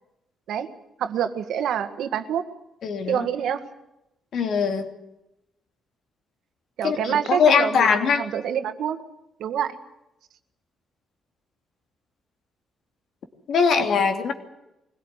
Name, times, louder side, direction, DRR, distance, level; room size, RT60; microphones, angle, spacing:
voice 1, 1.0-2.5 3.1-3.6 6.8-9.0 9.4-9.8, right 8 dB, 75° right, 9 dB, 1.7 m, -26 dB
voice 2, 2.8-3.3 4.3-4.9 6.8-8.2 13.5-14.3, left 6 dB, 65° left, 5 dB, 3.0 m, -21 dB
22.5 x 17.0 x 9.7 m, 0.90 s
cardioid pair, 90°, 0 cm